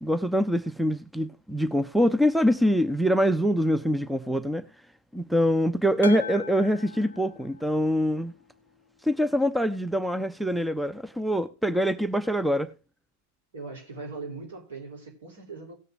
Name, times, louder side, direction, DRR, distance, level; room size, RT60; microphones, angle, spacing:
voice 1, 0.0-4.6 5.1-8.3 9.0-12.7, equal, ahead, 0.6 m, -24 dB
sound 1, 6.0-8.3, left 6 dB, 70° left, 0.4 m, -40 dB
voice 2, 13.5-15.7, right 3 dB, 60° right, 3.4 m, -40 dB
18.0 x 6.6 x 2.6 m
figure-of-eight pair, 90°, 0 cm